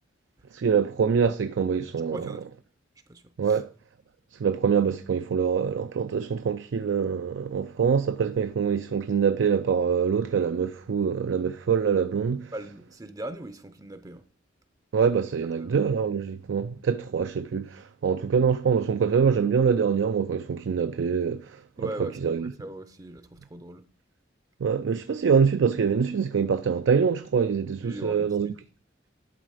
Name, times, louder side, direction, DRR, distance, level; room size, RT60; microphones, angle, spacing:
voice 1, 0.5-2.2 3.4-3.7 4.3-12.5 14.9-21.9 22.2-22.5 24.6-28.5, right 6 dB, 70° right, 0.4 m, -24 dB
voice 2, 2.1-2.5 3.1-3.6 12.5-14.2 15.3-15.8 21.8-23.9 27.8-28.5, right 1 dB, 20° right, 0.5 m, -40 dB
11.5 x 3.9 x 4.9 m
head